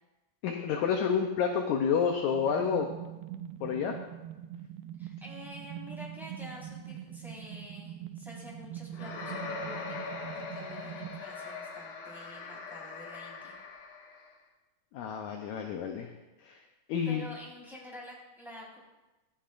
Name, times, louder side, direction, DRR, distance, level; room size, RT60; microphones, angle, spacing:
voice 1, 0.4-2.9 3.6-4.0 14.9-16.1 16.4-16.6 16.9-17.3, left 7 dB, 75° left, 3 dB, 1.8 m, -29 dB
sound 1, 2.3-11.2, right 11 dB, 85° right, 2.4 m, -43 dB
voice 2, 5.0-13.5 17.0-18.8, left 1 dB, ahead, -6 dB, 4.1 m, -48 dB
sound 2, 8.9-14.3, left 4 dB, 90° left, 3.5 m, -41 dB
25.0 x 8.7 x 2.6 m, 1.1 s
omnidirectional pair, 4.1 m